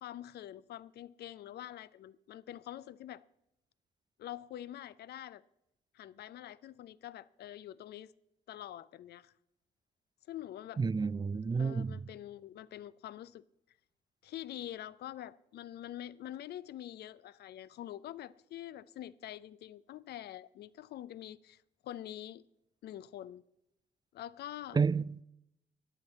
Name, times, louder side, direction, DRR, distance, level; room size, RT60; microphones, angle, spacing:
voice 1, 0.0-3.2 4.2-5.4 5.9-8.1 8.5-9.3 10.3-10.8 11.6-13.4 14.2-22.4 22.8-23.4 24.1-24.8, left 12 dB, 65° left, 0.5 m, -45 dB
voice 2, 10.8-12.1 24.7-25.2, right 5 dB, 25° right, 0.4 m, -30 dB
14.0 x 9.8 x 4.1 m
hypercardioid pair, 45°, 18 cm